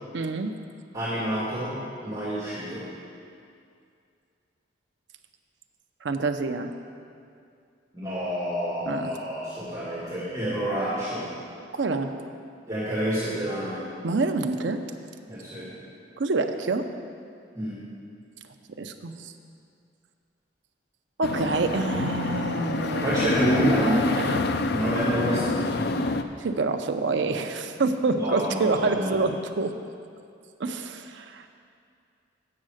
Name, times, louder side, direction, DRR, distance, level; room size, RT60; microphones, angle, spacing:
voice 1, 0.1-0.5 6.0-6.7 8.9-9.1 11.7-12.1 14.0-14.8 16.2-16.9 18.8-19.3 21.2-23.3 24.2-24.4 26.4-29.7 30.6-31.6, right 3 dB, 70° right, 6 dB, 0.6 m, -27 dB
voice 2, 0.9-1.7 2.0-2.9 7.9-11.3 12.7-13.8 15.3-15.7 17.6-17.8 23.0-24.0 24.7-26.0 28.2-29.2, equal, 20° right, -10 dB, 2.0 m, -28 dB
sound 1, 21.2-26.2, left 3 dB, 55° left, 0.4 m, -27 dB
8.7 x 6.5 x 6.3 m, 2.4 s
head